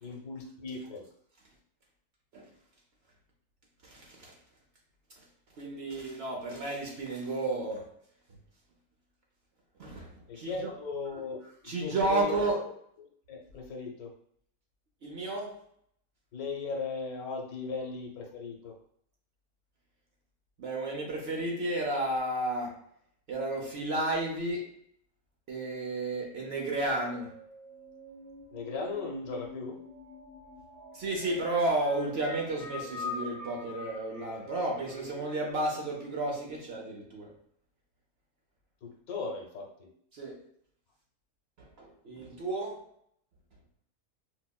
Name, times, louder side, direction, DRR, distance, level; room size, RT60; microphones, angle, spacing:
voice 1, 0.0-1.1 10.3-11.4 11.6-12.4 13.0-14.1 16.3-18.8 28.5-29.8 38.8-39.9, left 4 dB, 90° left, 2 dB, 1.2 m, -38 dB
voice 2, 3.9-4.3 5.6-7.8 9.8-10.1 10.4-10.7 11.6-12.6 15.0-15.5 20.6-22.7 23.3-24.7 25.5-27.3 30.9-37.3 40.1-40.4 41.6-42.8, right 2 dB, 55° right, -1 dB, 0.8 m, -32 dB
sound 1, 26.1-35.5, left 2 dB, 15° left, 0.8 m, -45 dB
4.8 x 2.1 x 2.2 m, 0.66 s
omnidirectional pair, 1.5 m